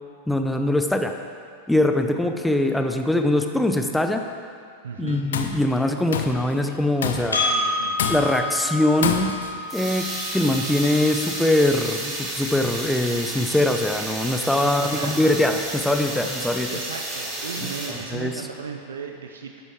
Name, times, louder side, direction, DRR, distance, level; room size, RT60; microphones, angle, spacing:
voice 1, 0.3-1.1 1.7-4.2 5.0-7.5 8.1-9.3 9.7-10.1 10.3-16.7 17.9-18.3, left 1 dB, 5° left, 5 dB, 0.6 m, -22 dB
voice 2, 4.8-5.2 7.2-8.2 14.6-15.2 16.7-19.5, right 6 dB, 65° right, 3 dB, 0.5 m, -36 dB
Tools, 5.1-5.6 6.1-6.5 7.0-7.5 8.0-8.5 9.0-9.6, left 7 dB, 60° left, 0.6 m, -28 dB
Percussion, 7.3-12.1, left 2 dB, 75° left, 1.4 m, -29 dB
sound 1, 9.7-18.4, right 1 dB, 25° right, 2.1 m, -32 dB
10.5 x 8.3 x 3.6 m, 2.2 s
figure-of-eight pair, 90°, 0 cm